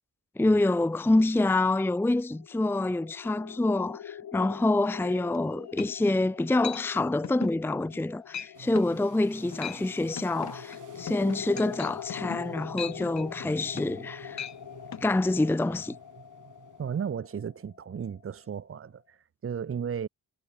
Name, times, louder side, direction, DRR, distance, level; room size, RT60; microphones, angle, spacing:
voice 1, 0.4-14.4 15.0-16.0, left 2 dB, 5° left, 0.6 m, -26 dB
sound 1, 2.1-18.7, left 10 dB, 80° left, 6.5 m, -45 dB
sound 2, 5.3-5.4 5.8-6.2 6.6-6.8 7.2-7.6 7.9-8.1 8.3-8.5 8.7-9.0 9.4-9.8 10.2-14.0 14.3-14.6 14.9-15.0, left 8 dB, 55° left, 1.8 m, -39 dB
sound 3, 8.5-17.1, right 8 dB, 60° right, 6.8 m, -51 dB
voice 2, 16.8-20.1, right 7 dB, 40° right, 1.0 m, -34 dB
wide cardioid pair, 130°, 34 cm